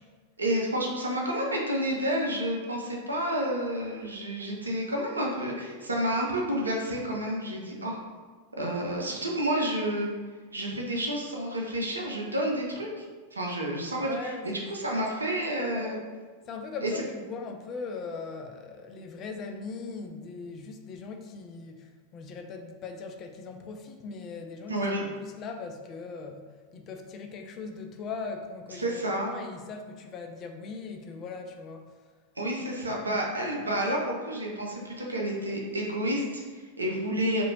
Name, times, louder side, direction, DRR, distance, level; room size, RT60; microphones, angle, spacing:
voice 1, 0.4-8.0 8.6-10.1 10.5-13.0 13.3-16.0 16.8-16.9 24.7-25.0 28.8-29.3 32.4-37.4, right 1 dB, 75° right, -1 dB, 0.5 m, -30 dB
voice 2, 14.1-15.1 15.6-16.1 16.5-24.8 25.0-31.9, left 4 dB, 30° left, 4 dB, 0.3 m, -40 dB
2.6 x 2.5 x 2.9 m, 1.4 s
figure-of-eight pair, 90°, 0 cm